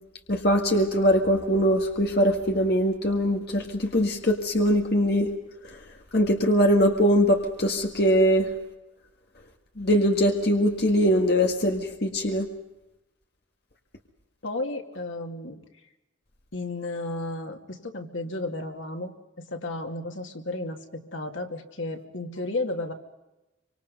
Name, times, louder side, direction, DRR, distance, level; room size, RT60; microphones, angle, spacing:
voice 1, 0.3-5.3 6.1-8.5 9.8-12.5, equal, 55° left, 3 dB, 1.8 m, -22 dB
voice 2, 14.4-15.6 16.5-19.1 19.4-22.9, left 2 dB, 90° left, 4 dB, 2.6 m, -33 dB
26.0 x 25.5 x 5.4 m, 0.97 s
head